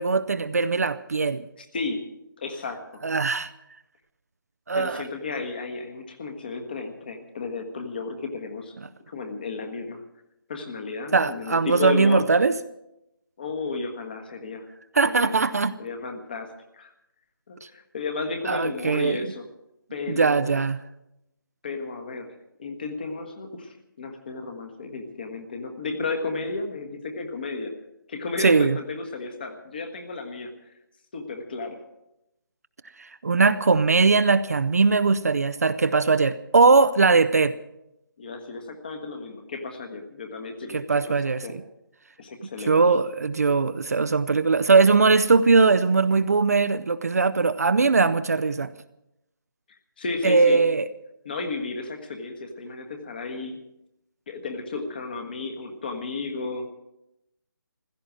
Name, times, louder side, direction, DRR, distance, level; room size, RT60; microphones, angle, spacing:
voice 1, 0.0-1.4 3.0-3.5 4.7-5.0 11.1-12.5 14.9-15.7 18.5-19.3 20.1-20.8 28.4-28.8 33.0-37.5 40.7-41.4 42.7-48.7 50.2-50.9, right 4 dB, 45° right, 0.6 m, -20 dB
voice 2, 1.6-2.0 2.4-3.0 4.7-8.7 9.1-10.0 10.5-12.2 13.4-14.7 15.0-15.3 15.8-16.9 17.5-19.4 19.9-20.5 21.6-22.3 22.6-27.7 28.1-30.7 31.1-31.8 38.2-41.1 41.4-41.6 42.2-42.8 49.7-50.6 51.2-53.6 54.3-56.7, left 3 dB, 25° left, 1.4 m, -33 dB
16.0 x 13.5 x 6.2 m
figure-of-eight pair, 175°, 11 cm